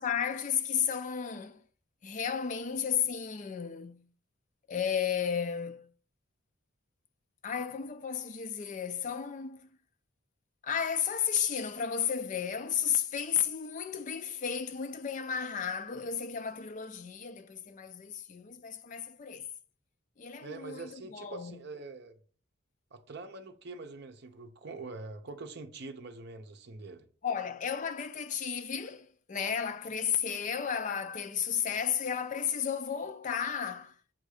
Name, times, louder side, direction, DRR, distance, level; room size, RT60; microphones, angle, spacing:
voice 1, 0.0-1.6 2.0-4.1 4.7-5.9 7.4-9.7 10.6-19.5 20.2-21.6 27.2-33.9, left 8 dB, 35° left, 0.4 m, -33 dB
voice 2, 20.4-22.2 22.9-27.1, right 3 dB, 50° right, 0.6 m, -44 dB
7.4 x 2.6 x 4.8 m
head